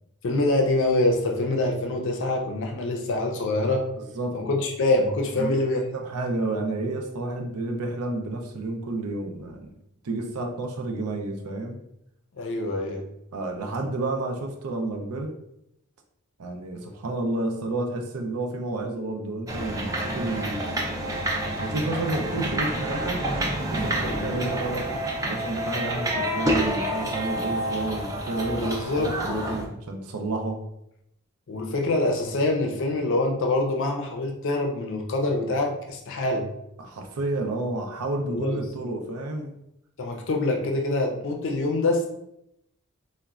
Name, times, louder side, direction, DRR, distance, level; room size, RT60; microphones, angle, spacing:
voice 1, 0.2-3.9 4.3-5.8 12.4-13.1 23.9-24.4 28.6-29.6 31.5-36.5 38.3-38.6 40.0-42.1, left 2 dB, 60° left, 2 dB, 0.5 m, -25 dB
voice 2, 4.0-4.4 5.4-5.5 5.9-9.7 10.0-11.8 13.3-15.3 16.4-20.8 21.6-23.2 23.7-24.9 25.2-30.6 36.8-39.5, right 2 dB, 90° right, 3 dB, 0.5 m, -30 dB
sound 1, 19.5-29.6, right 1 dB, 15° right, 0.4 m, -28 dB
3.9 x 2.1 x 2.3 m, 0.80 s
head